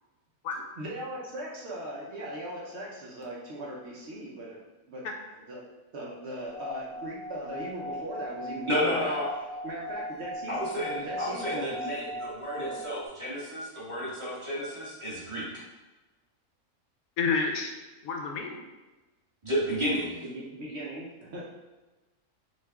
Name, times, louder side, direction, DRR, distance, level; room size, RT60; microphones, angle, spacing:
voice 1, 0.8-4.6 4.9-5.1 5.5-5.7 5.9-9.2 9.6-10.6 11.0-11.9 12.6-12.8 20.2-21.5, right 1 dB, 60° right, -4 dB, 0.9 m, -39 dB
Singing / Glass, 6.5-13.1, equal, 30° left, 1.0 m, -38 dB
voice 2, 8.7-9.3 10.5-15.5 19.4-20.2, equal, 20° right, -9 dB, 1.3 m, -31 dB
voice 3, 17.2-17.8 18.0-18.6, left 4 dB, 85° left, 3 dB, 1.1 m, -29 dB
6.2 x 2.4 x 2.3 m, 1.1 s
omnidirectional pair, 1.4 m